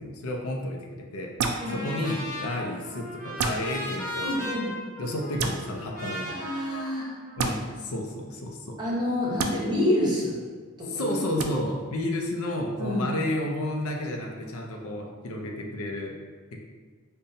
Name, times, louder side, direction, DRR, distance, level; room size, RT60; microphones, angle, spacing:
voice 1, 0.0-1.4 1.7-4.4 5.0-6.3 7.4-8.8 10.9-16.2 16.5-16.6, left 1 dB, 70° left, 1 dB, 0.5 m, -31 dB
sound 1, 1.4-1.6 3.4-3.6 5.4-5.6 7.4-7.5 9.4-9.5 11.4-11.5, right 5 dB, 70° right, 0.3 m, -27 dB
Trumpet, 1.5-7.8, left 1 dB, 35° left, 0.7 m, -37 dB
voice 2, 4.2-4.7 6.2-7.1 8.8-10.4 10.8-11.1 12.8-13.0, left 1 dB, 20° right, -6 dB, 0.9 m, -27 dB
5.3 x 2.2 x 2.6 m, 1.5 s
head